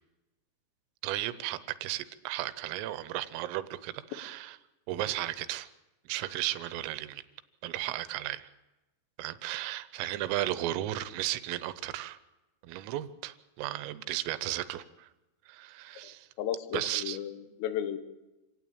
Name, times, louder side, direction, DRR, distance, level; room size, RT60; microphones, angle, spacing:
voice 1, 1.0-4.6 4.9-5.7 6.1-7.2 7.6-8.5 9.2-12.2 12.6-15.1 15.5-16.3 16.7-17.2, right 14 dB, 90° right, 14 dB, 3.6 m, -35 dB
voice 2, 16.4-18.0, left 10 dB, 80° left, 10 dB, 3.9 m, -34 dB
27.0 x 17.0 x 8.7 m, 1.1 s
omnidirectional pair, 5.8 m